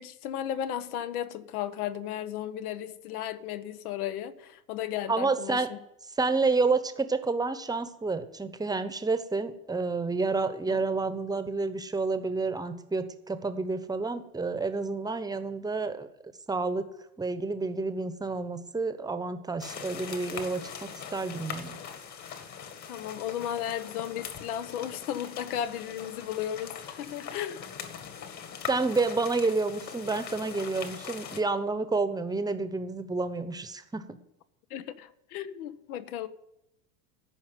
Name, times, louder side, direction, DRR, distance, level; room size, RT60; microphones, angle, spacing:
voice 1, 0.0-5.8 10.7-10.8 22.9-27.7 34.7-36.3, left 10 dB, 75° left, 1.1 m, -35 dB
voice 2, 5.1-5.7 6.2-16.1 16.5-16.9 17.2-21.8 28.6-34.2, right 3 dB, 10° right, 1.0 m, -29 dB
sound 1, 19.6-31.4, left 7 dB, 40° left, 2.0 m, -41 dB
14.0 x 5.5 x 9.3 m
hypercardioid pair, 110°, 45 cm